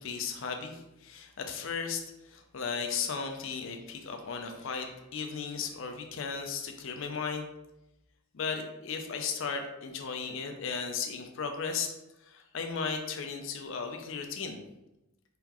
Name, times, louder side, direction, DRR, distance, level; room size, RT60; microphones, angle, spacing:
voice 1, 0.0-7.5 8.3-11.9 12.2-14.6, left 5 dB, 65° left, 5 dB, 0.5 m, -36 dB
3.8 x 3.3 x 2.9 m, 0.93 s
head